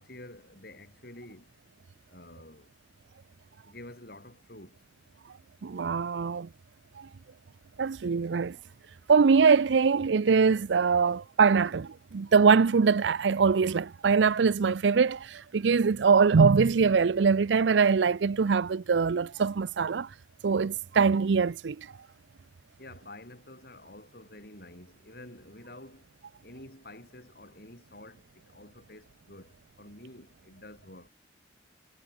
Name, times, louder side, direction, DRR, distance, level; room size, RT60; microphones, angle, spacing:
voice 1, 0.0-1.4 2.1-2.7 3.6-4.8 22.8-26.0 26.4-31.1, left 1 dB, 55° left, 6.1 m, -49 dB
voice 2, 5.6-6.5 7.8-8.6 9.1-20.1 20.4-21.9, right 5 dB, 85° right, 0.5 m, -23 dB
head